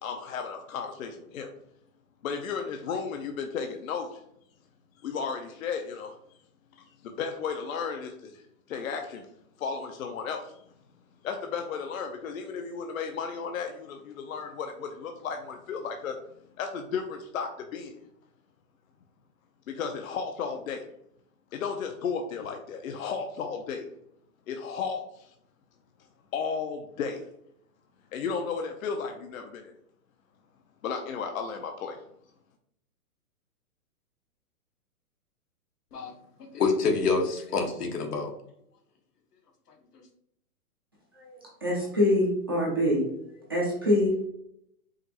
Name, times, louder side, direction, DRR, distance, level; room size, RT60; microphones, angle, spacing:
voice 1, 0.0-1.5 2.2-4.2 5.0-6.2 6.8-8.4 8.7-9.3 9.6-10.5 11.2-16.2 16.6-17.9 19.7-20.9 21.5-23.9 24.5-25.3 26.3-27.2 28.1-29.7 30.8-32.0, left 6 dB, 65° left, 4 dB, 0.7 m, -34 dB
voice 2, 36.4-38.3, left 4 dB, 85° left, 3 dB, 1.4 m, -27 dB
voice 3, 41.6-44.3, left 1 dB, 15° right, -6 dB, 0.4 m, -25 dB
5.0 x 3.0 x 2.8 m, 0.74 s
hypercardioid pair, 165°, 45 cm